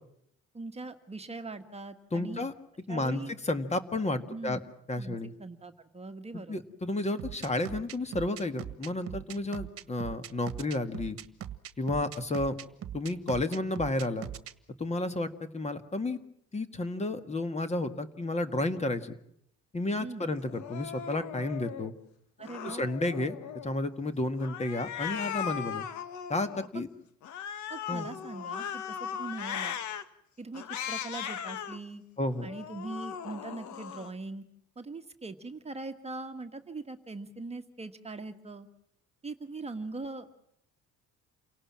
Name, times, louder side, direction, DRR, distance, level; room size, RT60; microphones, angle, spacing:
voice 1, 0.5-2.5 2.9-3.3 4.3-4.6 5.0-6.6 20.0-20.3 22.4-22.9 27.7-29.8 30.4-32.0 32.4-34.4 34.7-38.7 39.2-40.3, right 3 dB, 20° right, 6 dB, 1.5 m, -41 dB
voice 2, 2.1-2.5 2.9-4.6 4.9-5.3 6.3-11.2 11.8-12.6 12.9-14.3 14.8-16.2 16.5-19.2 19.7-21.9 22.6-23.4 23.6-25.9 26.3-26.9 27.9-28.1 32.2-32.5, left 2 dB, 20° left, 10 dB, 1.9 m, -31 dB
sound 1, 7.2-14.5, right 10 dB, 50° right, 1.4 m, -40 dB
Cat, 20.5-21.9 22.4-23.8 24.4-26.7 27.2-30.0 30.5-31.8 32.3-34.1, left 8 dB, 70° left, 1.8 m, -38 dB
28.5 x 18.0 x 7.5 m, 0.73 s
cardioid pair, 125°, 30 cm